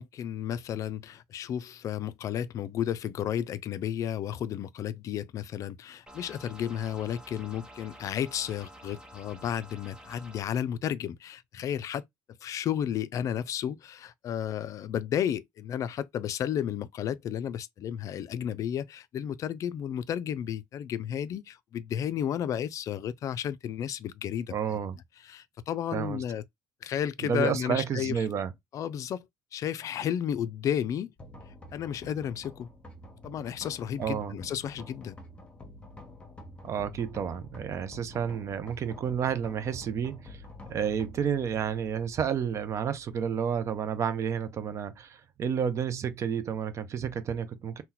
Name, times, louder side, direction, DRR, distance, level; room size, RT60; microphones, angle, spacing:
voice 1, 0.0-12.0 12.4-24.8 25.2-26.4 26.8-28.2 28.7-29.3 29.5-31.1 31.7-32.7 33.2-35.2, left 9 dB, 50° left, 0.4 m, -32 dB
sound 1, 6.1-10.4, equal, 10° right, 0.7 m, -50 dB
voice 2, 24.5-25.0 25.9-26.2 27.2-28.5 34.0-34.3 36.6-47.8, right 7 dB, 45° right, 0.5 m, -31 dB
sound 2, 31.2-45.0, left 1 dB, 15° left, 0.9 m, -49 dB
2.8 x 2.2 x 3.8 m
cardioid pair, 120°, 7 cm